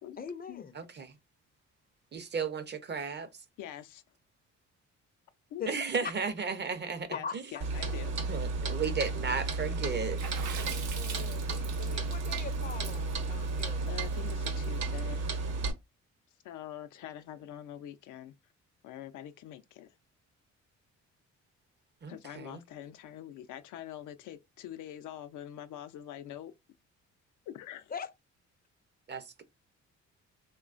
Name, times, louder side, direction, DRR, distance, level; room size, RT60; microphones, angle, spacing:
voice 1, 0.2-0.7 5.6-5.7 7.1-7.3 10.6-14.0 27.9-28.1, left 6 dB, 30° left, 0.5 m, -42 dB
voice 2, 0.8-1.1 2.1-3.3 5.7-7.1 8.3-10.2 22.0-22.6 29.1-29.4, right 5 dB, 35° right, 0.6 m, -34 dB
voice 3, 3.6-4.0 5.5-5.6 7.1-8.1 13.9-15.3 16.4-18.3 18.8-19.9 22.1-26.5 27.5-27.9, left 11 dB, 80° left, 0.5 m, -44 dB
Clock, 7.6-15.7, right 3 dB, 60° right, 0.9 m, -33 dB
Water / Splash splatter, 10.2-14.7, right 7 dB, 90° right, 0.7 m, -43 dB
3.0 x 2.2 x 2.5 m
cardioid pair, 90°, 30 cm